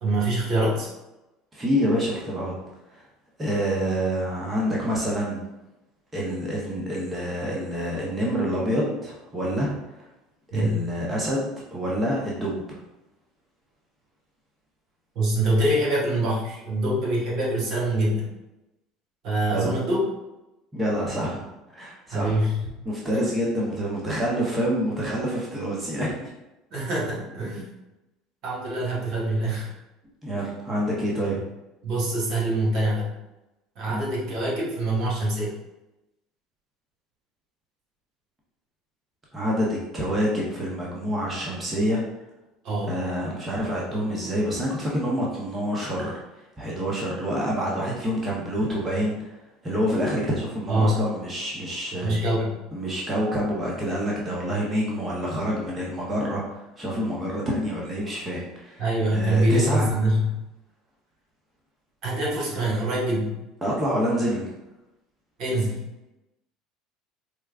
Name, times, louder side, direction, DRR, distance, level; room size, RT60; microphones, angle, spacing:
voice 1, 0.0-0.9 10.5-10.8 15.1-18.3 19.2-20.1 22.1-22.6 23.1-23.2 26.7-27.7 28.4-29.7 31.8-33.1 33.8-35.5 42.6-43.0 50.7-51.0 52.0-52.6 58.8-60.3 62.0-63.3 65.4-65.8, right 1 dB, 60° right, -4 dB, 1.3 m, -24 dB
voice 2, 1.5-2.5 2.9-3.0 3.4-5.4 6.1-10.1 10.5-12.8 19.5-19.7 20.7-21.5 21.7-22.4 22.8-26.3 30.2-31.4 39.3-42.0 42.9-46.2 46.6-49.3 49.6-52.2 52.7-58.8 59.1-59.9 63.6-64.5, equal, 20° right, -4 dB, 0.9 m, -27 dB
4.6 x 2.2 x 2.4 m, 0.96 s
hypercardioid pair, 75°, 0 cm